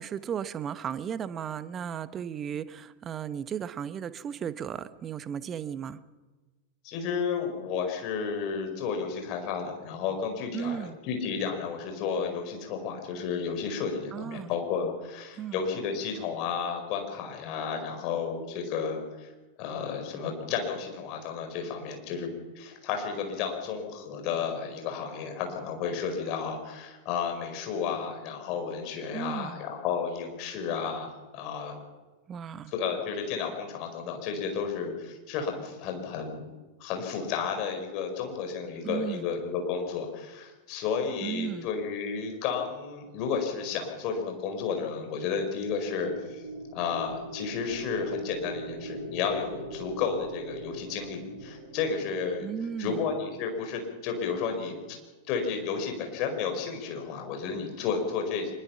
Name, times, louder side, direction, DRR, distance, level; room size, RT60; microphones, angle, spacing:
voice 1, 0.0-6.0 10.5-11.0 14.1-14.5 15.4-15.6 29.1-29.6 32.3-32.7 38.8-39.3 41.2-41.7 52.4-53.1, right 8 dB, 25° right, 15 dB, 1.0 m, -35 dB
voice 2, 6.8-19.3 19.6-31.8 32.7-36.4 36.8-46.5 46.7-52.5 52.8-55.0 55.3-58.5, left 6 dB, 40° left, 4 dB, 4.9 m, -32 dB
sound 1, 45.5-53.9, right 1 dB, 70° right, 4.0 m, -41 dB
24.0 x 22.0 x 5.9 m, 1.3 s
figure-of-eight pair, 90°, 0 cm